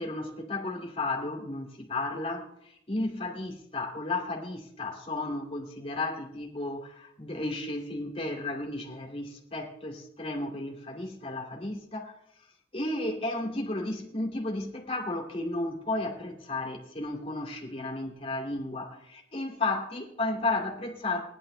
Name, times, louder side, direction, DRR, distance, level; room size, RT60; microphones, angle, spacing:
voice 1, 0.0-12.2 12.7-21.2, left 2 dB, 35° left, 0 dB, 2.6 m, -33 dB
19.5 x 11.0 x 3.3 m, 0.77 s
head